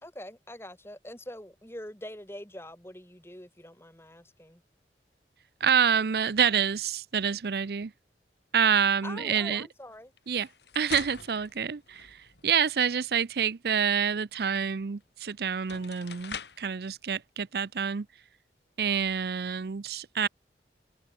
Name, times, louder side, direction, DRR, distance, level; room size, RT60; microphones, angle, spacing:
voice 1, 0.0-4.6 9.0-10.1, left 1 dB, 15° left, 3.0 m, -44 dB
voice 2, 5.6-7.9 8.5-9.7 10.3-10.5 10.7-18.1 18.8-20.3, right 7 dB, 65° right, 0.5 m, -27 dB
sound 1, 10.2-12.6 15.0-15.1 15.5-16.7, left 7 dB, 80° left, 5.4 m, -44 dB
head